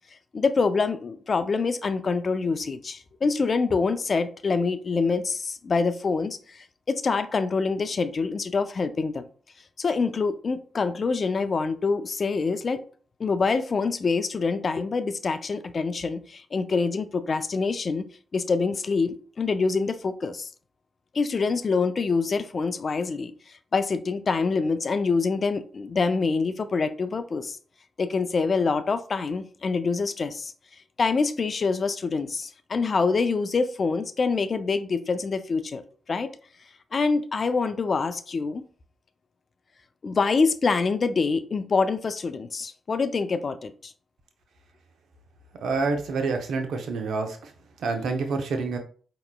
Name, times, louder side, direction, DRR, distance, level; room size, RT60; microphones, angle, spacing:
voice 1, 0.3-9.3 9.8-12.8 13.2-18.1 18.3-20.5 21.1-27.6 28.0-30.5 31.0-35.8 36.1-36.3 36.9-38.6 40.0-43.9, left 4 dB, 50° left, 0.4 m, -25 dB
voice 2, 45.6-47.5 47.8-48.8, right 4 dB, 75° right, 0.7 m, -27 dB
4.8 x 2.9 x 2.2 m
supercardioid pair, 50°, 0 cm